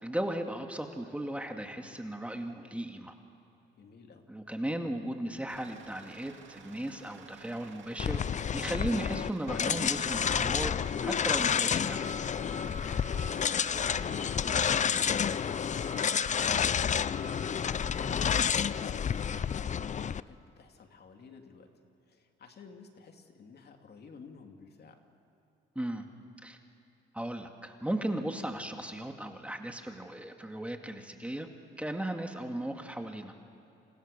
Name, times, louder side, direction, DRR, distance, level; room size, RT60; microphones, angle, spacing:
voice 1, 0.0-3.1 4.3-10.7 11.0-12.0 25.8-26.1 26.4-26.6 27.1-31.5 31.8-33.3, right 1 dB, 5° right, 4 dB, 2.2 m, -36 dB
voice 2, 3.7-4.3 12.7-16.6 17.1-21.7 22.1-25.0, left 5 dB, 55° left, 4 dB, 2.7 m, -52 dB
sound 1, 5.5-19.5, right 4 dB, 75° right, 2.2 m, -49 dB
sound 2, 8.0-20.2, left 7 dB, 35° left, 0.5 m, -30 dB
28.5 x 28.0 x 6.8 m, 2.9 s
cardioid pair, 90°, 20 cm